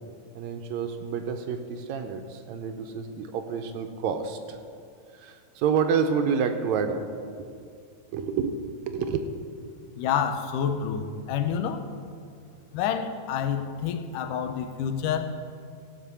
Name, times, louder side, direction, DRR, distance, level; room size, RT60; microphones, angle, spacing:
voice 1, 0.4-4.6 5.1-7.1 8.1-9.8, right 6 dB, 75° right, 7 dB, 1.8 m, -29 dB
voice 2, 10.0-11.9 12.7-15.2, left 8 dB, 90° left, 8 dB, 2.3 m, -28 dB
15.5 x 5.9 x 6.9 m, 2.4 s
omnidirectional pair, 3.6 m